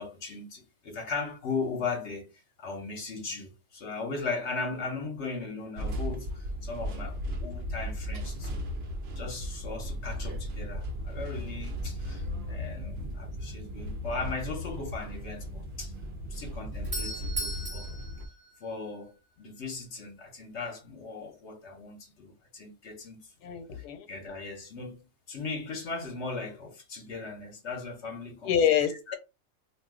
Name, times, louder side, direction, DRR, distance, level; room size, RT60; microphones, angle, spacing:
voice 1, 0.0-8.6 9.2-15.9 16.2-17.9 18.6-23.3 23.7-28.5 29.1-29.2, left 4 dB, 55° left, 0.9 m, -38 dB
sound 1, 5.8-18.3, equal, 70° right, 0.5 m, -36 dB
Doorbell, 16.5-19.3, right 1 dB, 20° right, 0.6 m, -38 dB
voice 2, 23.4-24.1 28.4-29.1, left 9 dB, 85° left, 1.2 m, -26 dB
2.6 x 2.4 x 3.5 m
omnidirectional pair, 1.7 m